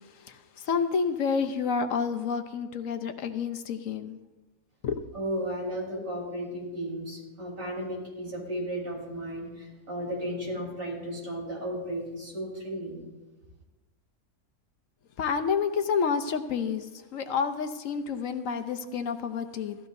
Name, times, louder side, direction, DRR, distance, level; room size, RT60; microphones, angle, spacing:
voice 1, 0.6-4.2 4.8-5.0 15.2-16.9 17.1-19.8, left 6 dB, 60° left, 7 dB, 1.0 m, -29 dB
voice 2, 5.1-13.0, equal, 60° right, -5 dB, 4.7 m, -34 dB
16.5 x 14.5 x 2.7 m, 1.2 s
omnidirectional pair, 1.7 m